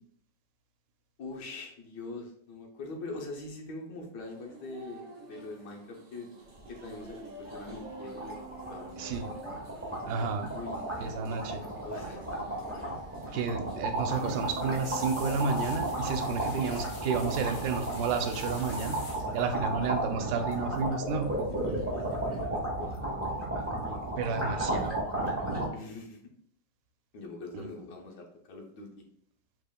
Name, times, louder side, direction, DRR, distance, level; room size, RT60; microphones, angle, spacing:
voice 1, 1.2-6.3 6.7-9.2 10.5-11.4 11.8-12.2 21.5-24.0 25.7-26.2 27.1-28.9, left 2 dB, 75° left, 1 dB, 1.4 m, -43 dB
sound 1, 4.2-22.5, right 2 dB, 60° right, 1.3 m, -48 dB
sound 2, 6.6-6.7 7.1-7.2 7.4-25.7, right 1 dB, 10° right, 0.7 m, -34 dB
voice 2, 10.0-10.5 11.0-11.6 13.3-19.0 19.3-21.3 24.2-25.0 27.5-27.7, right 5 dB, 85° right, 6 dB, 1.3 m, -31 dB
sound 3, 13.9-19.5 20.5-20.8 21.1-21.4 22.6-23.1 23.5-24.0 24.5-24.9 25.3-25.4, left 2 dB, 50° left, 1.6 m, -48 dB
5.3 x 3.5 x 2.2 m, 0.68 s
omnidirectional pair, 1.9 m